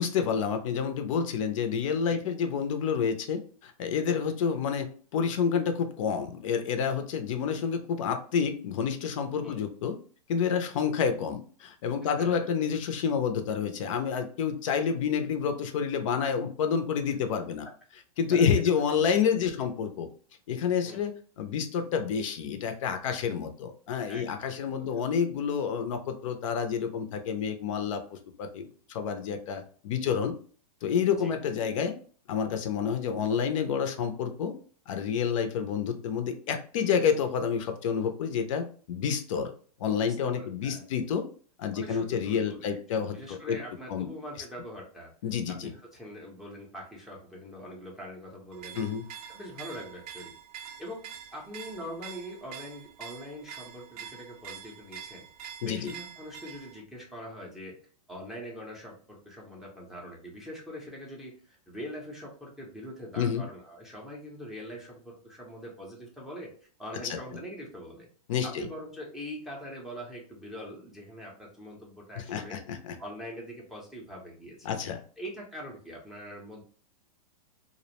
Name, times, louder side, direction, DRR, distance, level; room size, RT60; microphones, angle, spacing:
voice 1, 0.0-10.0 10.3-17.7 18.2-20.1 20.5-30.3 30.8-31.9 32.3-34.5 34.9-39.5 39.8-41.2 41.6-43.6 43.9-44.1 45.2-45.7 48.7-49.1 55.6-55.9 63.2-63.4 67.0-67.2 68.3-68.7 72.2-73.0 74.6-75.0, left 7 dB, 55° left, 7 dB, 0.4 m, -29 dB
voice 2, 12.0-12.5 18.3-18.5 18.9-19.1 19.5-19.6 20.8-21.0 24.1-24.5 24.7-24.9 31.2-31.3 40.0-40.8 41.7-45.1 45.5-48.8 49.3-50.3 50.8-51.0 51.3-55.3 55.6-57.8 58.1-66.5 66.8-68.1 68.4-72.6 73.0-74.8 75.2-76.6, equal, ahead, -4 dB, 0.5 m, -43 dB
sound 1, 48.5-56.8, right 8 dB, 70° right, 0.5 m, -45 dB
2.4 x 2.0 x 2.8 m, 0.43 s
hypercardioid pair, 145°, 20 cm